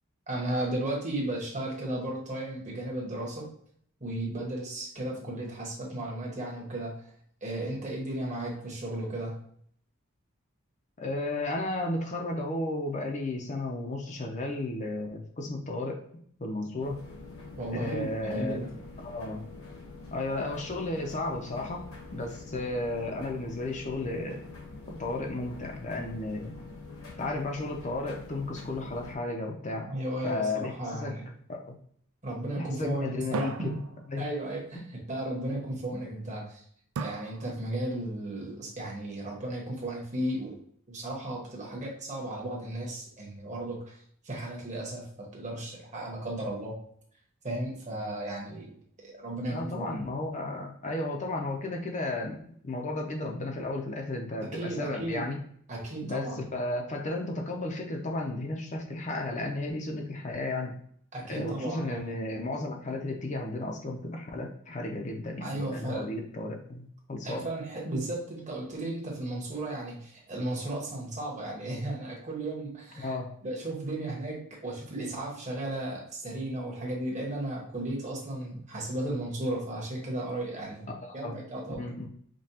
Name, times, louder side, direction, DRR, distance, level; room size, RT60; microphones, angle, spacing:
voice 1, 0.3-3.4 4.0-7.1 7.4-9.4 17.6-18.7 29.8-31.3 32.2-33.7 34.2-36.6 37.0-40.6 40.9-44.0 44.2-46.7 47.4-48.8 49.0-50.0 54.5-55.2 55.7-56.4 61.1-62.1 65.4-66.1 67.2-73.2 73.4-80.9 81.1-81.8, right 1 dB, 35° right, -2 dB, 1.2 m, -35 dB
voice 2, 11.0-17.0 17.7-18.7 19.0-19.4 20.1-21.8 22.1-24.4 24.9-26.5 27.2-29.9 30.2-31.2 31.5-31.8 32.6-33.8 34.1-34.2 49.5-52.4 52.6-55.4 56.0-60.8 61.3-67.5 73.0-73.3 81.0-81.4 81.7-82.1, left 2 dB, 35° left, 2 dB, 0.6 m, -33 dB
sound 1, 16.8-29.1, left 3 dB, 70° left, 1.1 m, -45 dB
sound 2, 29.7-31.3 33.3-34.7 37.0-38.0, right 5 dB, 75° right, 0.4 m, -40 dB
5.1 x 2.3 x 2.8 m, 0.62 s
head